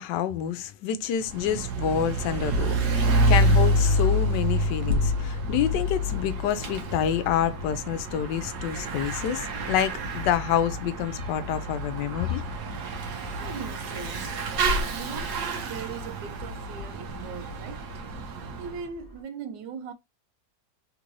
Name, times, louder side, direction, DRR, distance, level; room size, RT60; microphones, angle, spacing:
voice 1, 0.0-12.4, left 9 dB, 80° left, 1.2 m, -28 dB
Bicycle / Mechanisms, 1.2-18.8, right 1 dB, 65° right, 1.3 m, -28 dB
Gull seagull, 4.6-19.2, right 2 dB, 5° left, 1.3 m, -51 dB
voice 2, 13.4-14.3 14.6-17.8 18.6-19.9, right 6 dB, 85° right, 1.3 m, -39 dB
3.6 x 3.0 x 2.5 m
omnidirectional pair, 1.9 m